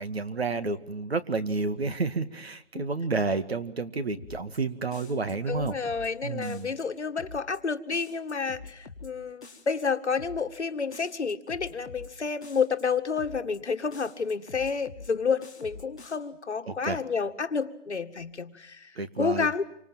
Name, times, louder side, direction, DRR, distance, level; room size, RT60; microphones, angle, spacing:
voice 1, 0.0-5.8 6.2-6.7 16.7-17.0 19.0-19.5, right 3 dB, 55° right, 2.0 m, -30 dB
sound 1, 4.2-4.6 4.9-6.1 6.4-6.8 7.2-7.6 7.9-9.1 9.4-9.8 10.2-10.6 10.9-12.1 12.4-12.8 13.2-13.6 13.9-15.1 15.4-16.2, left 4 dB, 5° left, 1.0 m, -45 dB
voice 2, 5.5-18.9 19.2-19.6, left 5 dB, 70° left, 1.9 m, -30 dB
28.0 x 25.5 x 7.4 m
hypercardioid pair, 175°, 36 cm